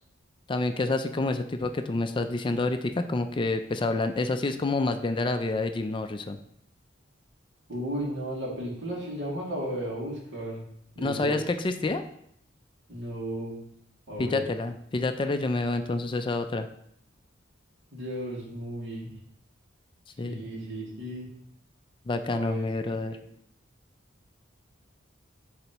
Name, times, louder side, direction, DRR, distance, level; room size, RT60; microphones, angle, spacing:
voice 1, 0.5-6.4 11.0-12.0 14.2-16.7 20.2-20.5 22.1-23.2, left 2 dB, 25° left, 8 dB, 0.4 m, -28 dB
voice 2, 7.7-10.6 10.9-11.4 12.9-13.6 14.1-14.4 17.9-19.1 20.2-21.3 22.3-22.7 23.1-23.2, right 1 dB, 75° right, -5 dB, 2.5 m, -34 dB
10.0 x 4.0 x 3.0 m, 0.71 s
head